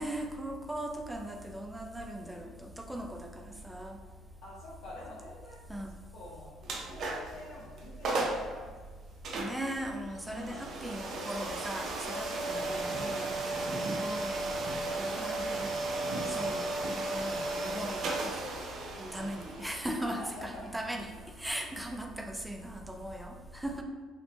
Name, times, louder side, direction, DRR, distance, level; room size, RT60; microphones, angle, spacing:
voice 1, 0.0-4.0 5.7-5.9 9.3-14.5 15.0-15.8 16.3-18.3 19.1-21.1 21.4-23.8, right 1 dB, 5° right, 2 dB, 0.4 m, -39 dB
voice 2, 4.4-5.6 6.1-8.7 10.3-10.7 12.4-13.2 14.8-16.4 20.0-20.7, left 1 dB, 90° left, -8 dB, 0.7 m, -47 dB
sound 1, 6.6-7.4 7.8-7.9 8.0-8.5 9.2-22.0, right 2 dB, 60° right, 0.6 m, -35 dB
4.3 x 2.1 x 2.8 m, 1.5 s
cardioid pair, 125°, 0 cm